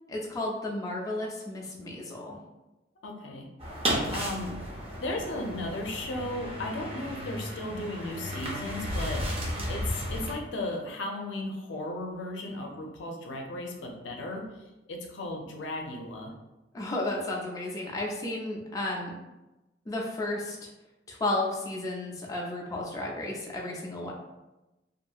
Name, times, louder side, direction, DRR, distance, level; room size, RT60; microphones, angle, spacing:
voice 1, 0.1-2.4 16.7-19.2 19.9-20.7 21.1-24.1, left 2 dB, 20° left, -2 dB, 0.4 m, -33 dB
voice 2, 3.0-3.5 4.1-4.5 5.0-16.3, left 1 dB, 85° left, 1 dB, 0.5 m, -36 dB
sound 1, 3.6-10.3, equal, 35° right, 0.6 m, -34 dB
2.7 x 2.5 x 2.3 m, 1.0 s
head